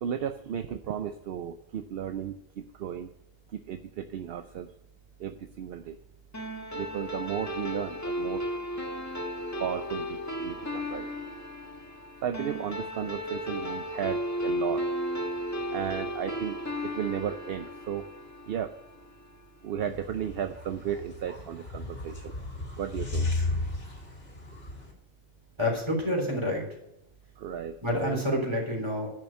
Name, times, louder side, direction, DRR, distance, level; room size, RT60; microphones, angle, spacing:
voice 1, 0.0-3.1 3.5-4.7 5.2-6.0 6.7-8.4 9.6-11.1 12.2-14.9 15.7-18.1 18.5-18.7 19.6-22.3 22.7-23.3 27.4-28.2, right 9 dB, 70° right, 8 dB, 0.8 m, -34 dB
sound 1, 6.3-19.1, equal, 15° left, 1.4 m, -34 dB
sound 2, 19.8-24.9, left 2 dB, 70° left, 2.6 m, -34 dB
voice 2, 25.6-26.6 27.8-29.1, left 1 dB, 25° right, -1 dB, 3.8 m, -28 dB
10.5 x 6.3 x 8.7 m, 0.82 s
omnidirectional pair, 1.0 m